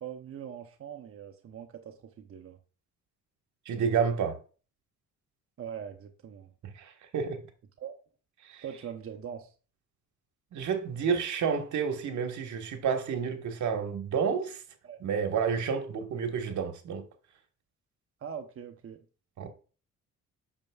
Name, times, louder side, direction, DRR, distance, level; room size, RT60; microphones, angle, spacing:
voice 1, 0.0-2.6 5.6-6.5 7.8-7.9 8.6-9.5 14.8-15.0 18.2-19.0, right 8 dB, 45° right, 0.8 m, -42 dB
voice 2, 3.6-4.4 6.6-7.4 8.4-8.6 10.5-14.6 15.0-17.0 19.4-19.5, right 6 dB, 70° right, 1.5 m, -30 dB
8.8 x 6.6 x 2.3 m
cardioid pair, 90°, 30 cm